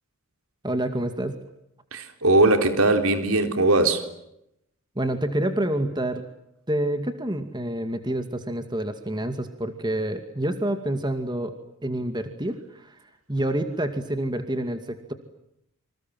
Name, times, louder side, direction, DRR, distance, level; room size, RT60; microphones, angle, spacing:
voice 1, 0.6-1.4 5.0-6.2 6.7-11.5 11.8-13.0 13.3-15.1, right 1 dB, 20° right, 2.3 m, -28 dB
voice 2, 1.9-4.0, right 2 dB, 75° right, 3.7 m, -20 dB
28.5 x 26.5 x 7.6 m
head